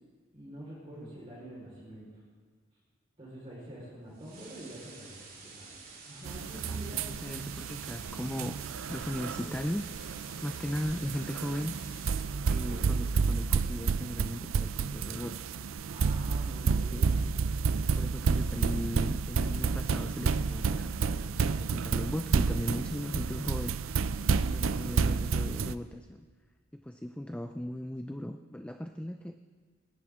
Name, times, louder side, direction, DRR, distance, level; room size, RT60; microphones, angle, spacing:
voice 1, 0.3-2.1 3.2-7.1 9.1-9.5 12.6-12.9 15.9-17.2, right 1 dB, 30° right, -8 dB, 4.5 m, -46 dB
voice 2, 0.9-1.2 6.7-8.6 8.9-9.9 10.4-11.7 12.5-15.4 16.8-17.0 17.7-23.7 24.4-26.3 26.7-29.4, equal, 5° left, 7 dB, 0.4 m, -37 dB
sound 1, 4.1-12.2, right 4 dB, 45° right, 3.5 m, -50 dB
sound 2, 6.2-25.7, right 5 dB, 80° right, 0.5 m, -30 dB
20.5 x 17.5 x 3.7 m, 1.5 s
head